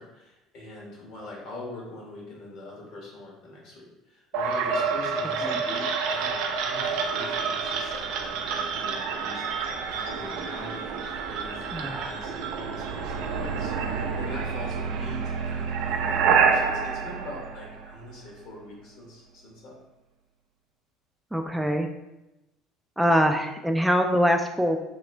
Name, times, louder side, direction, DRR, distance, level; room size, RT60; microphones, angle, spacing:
voice 1, 0.0-19.8, left 2 dB, 65° left, -3 dB, 1.2 m, -43 dB
sound 1, 4.3-18.2, right 5 dB, 75° right, 0.4 m, -28 dB
voice 2, 11.7-12.1 21.3-21.9 23.0-24.8, equal, 5° right, 4 dB, 0.3 m, -23 dB
2.9 x 2.4 x 3.2 m, 0.95 s
supercardioid pair, 85°, 0 cm